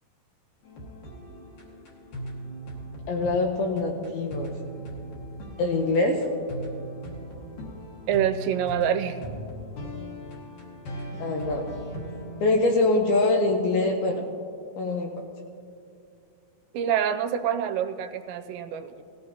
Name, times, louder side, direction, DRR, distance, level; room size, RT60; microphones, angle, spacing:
sound 1, 0.6-12.5, right 1 dB, 55° left, 2.3 m, -39 dB
voice 1, 3.1-4.5 5.6-6.2 11.2-11.7 12.4-14.3 14.8-15.1, left 2 dB, 80° left, 2 dB, 2.3 m, -24 dB
voice 2, 8.1-9.2 16.7-19.0, right 9 dB, 85° right, 9 dB, 2.7 m, -26 dB
18.5 x 14.5 x 2.8 m, 2.5 s
omnidirectional pair, 5.1 m